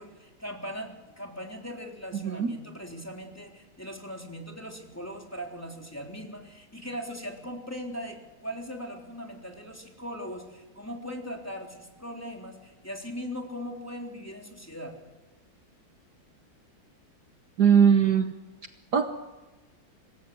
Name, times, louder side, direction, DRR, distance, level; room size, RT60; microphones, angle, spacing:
voice 1, 0.0-14.9, equal, 5° left, 1 dB, 3.5 m, -39 dB
voice 2, 2.2-2.5 17.6-18.3 18.9-19.0, right 7 dB, 60° right, 7 dB, 1.6 m, -20 dB
26.5 x 19.5 x 8.0 m, 1.2 s
omnidirectional pair, 2.1 m